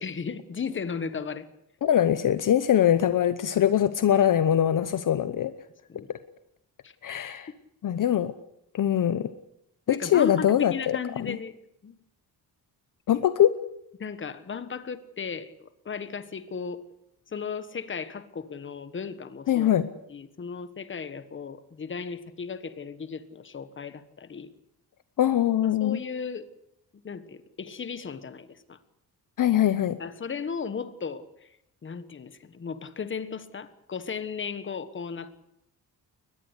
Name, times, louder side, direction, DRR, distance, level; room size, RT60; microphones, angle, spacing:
voice 1, 0.0-1.5 5.9-6.1 6.8-6.9 9.9-11.5 11.8-11.9 14.0-16.8 17.3-19.7 20.1-24.5 25.8-26.5 27.0-28.8 30.0-31.5 31.8-35.4, left 6 dB, 30° left, 13 dB, 1.4 m, -35 dB
voice 2, 1.8-5.5 6.1-6.2 7.0-7.5 7.8-8.3 8.7-9.3 9.9-11.4 13.1-13.6 19.5-19.9 25.2-26.0 29.4-30.0, left 10 dB, 55° left, 13 dB, 1.0 m, -23 dB
22.5 x 20.0 x 8.2 m, 0.77 s
wide cardioid pair, 175°, 38 cm